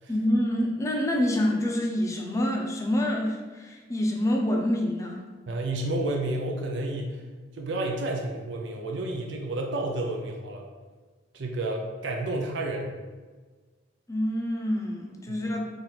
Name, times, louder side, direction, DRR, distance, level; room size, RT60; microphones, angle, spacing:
voice 1, 0.1-5.2 14.1-15.7, left 1 dB, 15° left, 0 dB, 0.5 m, -27 dB
voice 2, 5.5-7.2 7.5-10.6 11.3-13.0 15.3-15.5, right 2 dB, 75° right, 0 dB, 0.5 m, -30 dB
4.1 x 2.5 x 4.3 m, 1.4 s
head